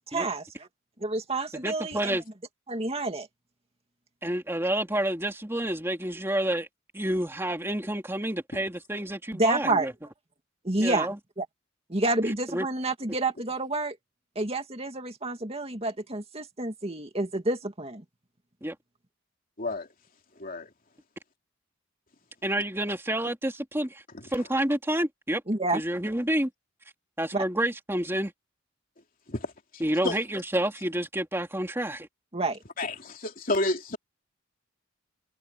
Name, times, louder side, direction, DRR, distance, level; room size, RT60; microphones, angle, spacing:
voice 1, 0.1-0.7 1.0-2.2 2.7-3.3 9.3-9.9 10.6-11.1 11.4-11.5 11.9-14.0 14.4-18.0 25.5-25.8 27.3-27.4 32.3-32.6, right 2 dB, 30° right, 2.3 m, -29 dB
voice 2, 1.5-2.2 4.2-6.7 6.9-9.9 10.8-11.2 12.5-12.7 18.6-18.7 22.4-24.0 24.3-25.4 25.7-26.5 27.2-28.3 29.8-32.1, right 1 dB, 10° right, 2.9 m, -29 dB
voice 3, 32.8-34.0, left 2 dB, 45° left, 3.1 m, -30 dB
head